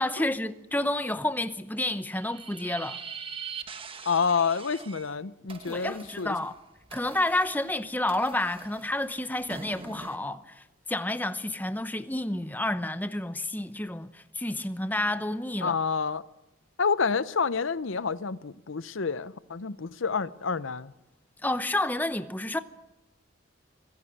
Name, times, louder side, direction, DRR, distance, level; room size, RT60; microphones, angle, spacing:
voice 1, 0.0-3.0 5.7-6.5 6.9-15.8 21.4-22.6, left 1 dB, 10° left, 0.8 m, -30 dB
sound 1, 2.0-5.1 5.5-10.2, right 6 dB, 25° right, 1.4 m, -43 dB
voice 2, 4.1-6.3 15.6-16.2 16.8-20.9, left 5 dB, 75° left, 0.7 m, -28 dB
24.5 x 16.5 x 8.8 m
head